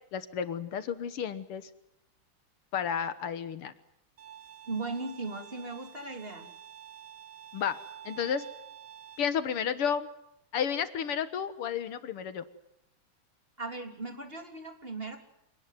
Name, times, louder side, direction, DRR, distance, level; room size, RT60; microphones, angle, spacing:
voice 1, 0.1-1.7 2.7-3.7 7.5-8.5 9.2-10.1 10.5-12.5, left 8 dB, 85° left, 12 dB, 2.3 m, -32 dB
Bowed string instrument, 4.2-9.2, right 10 dB, 55° right, 1.7 m, -49 dB
voice 2, 4.7-6.5 13.6-15.2, right 3 dB, 25° right, 4 dB, 3.5 m, -37 dB
26.0 x 18.5 x 9.4 m, 0.78 s
omnidirectional pair, 2.4 m